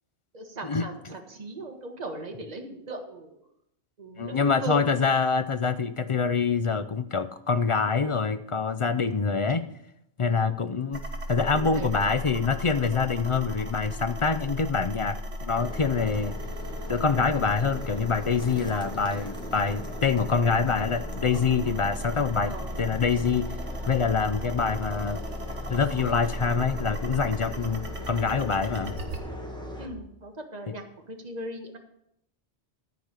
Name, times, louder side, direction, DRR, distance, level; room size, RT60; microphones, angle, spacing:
voice 1, 0.3-3.4 4.0-4.8 10.3-10.5 11.5-12.1 18.6-18.8 22.4-22.8 29.8-31.8, right 1 dB, 35° right, 3 dB, 1.5 m, -38 dB
voice 2, 4.2-9.6 10.2-11.0 11.3-16.3 16.9-23.5 23.9-25.2 25.7-28.9 30.7-30.8, left 5 dB, 45° left, 11 dB, 0.4 m, -25 dB
sound 1, 10.9-29.2, equal, 70° right, 1.7 m, -36 dB
sound 2, 15.6-29.9, left 1 dB, 5° left, 1.6 m, -39 dB
13.5 x 4.9 x 8.2 m, 0.79 s
omnidirectional pair, 1.2 m